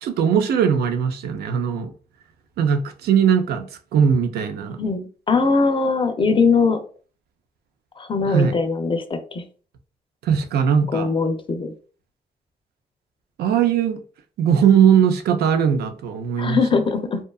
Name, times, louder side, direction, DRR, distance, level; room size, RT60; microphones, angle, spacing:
voice 1, 0.0-1.9 2.6-4.8 8.3-8.6 10.2-11.1 13.4-14.0 14.4-16.6, right 7 dB, 85° right, 0.4 m, -19 dB
voice 2, 4.8-6.8 8.0-9.4 10.9-11.7 16.4-17.2, left 4 dB, 30° left, 0.4 m, -21 dB
2.7 x 2.3 x 2.3 m
cardioid pair, 90°, 16 cm